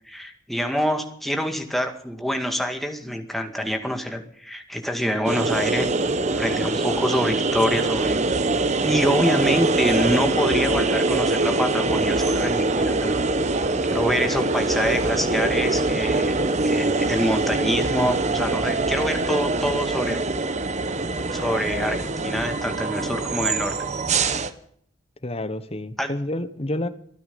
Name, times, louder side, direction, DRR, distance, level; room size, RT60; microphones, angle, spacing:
voice 1, 0.1-5.9 6.4-8.3 8.8-13.2 13.9-16.3 16.6-20.2 21.3-23.7 26.0-26.1, equal, ahead, 5 dB, 2.1 m, -26 dB
sound 1, 5.2-24.5, right 3 dB, 35° right, 1.0 m, -23 dB
voice 2, 25.2-26.9, left 1 dB, 30° left, 11 dB, 1.3 m, -29 dB
26.0 x 9.8 x 5.5 m, 0.63 s
head